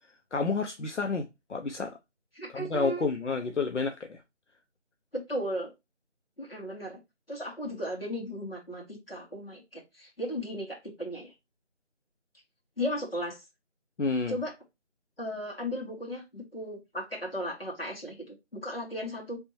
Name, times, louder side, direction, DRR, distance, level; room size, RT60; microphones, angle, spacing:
voice 1, 0.3-2.0 2.5-4.2 14.0-14.4, left 4 dB, 80° left, 0.6 m, -30 dB
voice 2, 2.3-3.1 5.1-5.7 6.4-7.0 7.3-11.3 12.8-13.4 14.3-14.5 15.2-19.4, equal, 55° left, 1.9 m, -36 dB
4.0 x 3.4 x 3.0 m
figure-of-eight pair, 175°, 35 cm